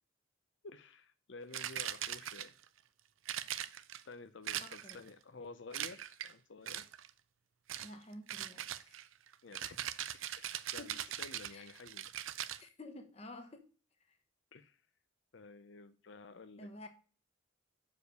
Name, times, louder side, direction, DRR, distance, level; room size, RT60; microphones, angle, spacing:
voice 1, 0.6-2.5 4.1-6.9 9.4-9.8 10.4-12.4 14.5-14.8 15.3-16.7, left 3 dB, 65° left, 0.6 m, -52 dB
sound 1, 1.5-2.7 3.3-4.0 4.5-5.1 5.7-6.3 6.7-7.1 7.7-7.9 8.3-12.6, right 11 dB, 85° right, 0.5 m, -41 dB
voice 2, 4.6-5.0 7.8-9.0 10.8-11.0 11.5-11.7 12.6-13.7 14.1-14.2 16.6-16.9, left 1 dB, 30° left, 1.1 m, -51 dB
6.7 x 5.0 x 6.5 m
head